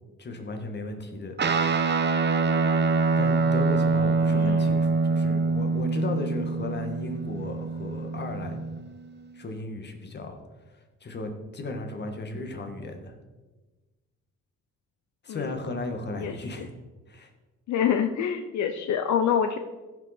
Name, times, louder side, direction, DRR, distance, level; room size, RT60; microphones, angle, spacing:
voice 1, 0.2-1.4 3.2-8.6 9.3-10.4 11.0-13.2 15.2-16.7 17.1-17.3, left 2 dB, 35° left, 4 dB, 1.8 m, -35 dB
Guitar, 1.4-9.0, right 4 dB, 35° right, 1.0 m, -25 dB
voice 2, 4.3-4.8 15.3-15.5 16.2-16.3 17.7-19.6, left 8 dB, 70° left, 8 dB, 0.7 m, -26 dB
15.0 x 5.5 x 4.3 m, 1.2 s
cardioid pair, 90°, 30 cm